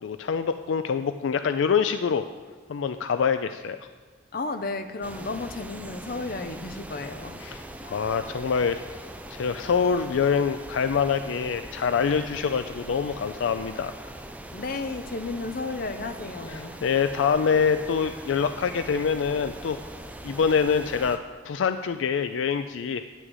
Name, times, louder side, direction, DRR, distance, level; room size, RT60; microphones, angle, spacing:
voice 1, 0.0-2.2 2.7-3.9 7.4-8.8 9.3-13.9 16.5-19.8 20.2-23.0, left 6 dB, 75° left, 10 dB, 0.4 m, -25 dB
voice 2, 4.3-7.4 14.5-16.8, left 3 dB, 50° left, 8 dB, 0.7 m, -33 dB
sound 1, 5.0-21.2, right 1 dB, 5° right, 0.5 m, -41 dB
9.2 x 6.2 x 8.0 m, 1.4 s
head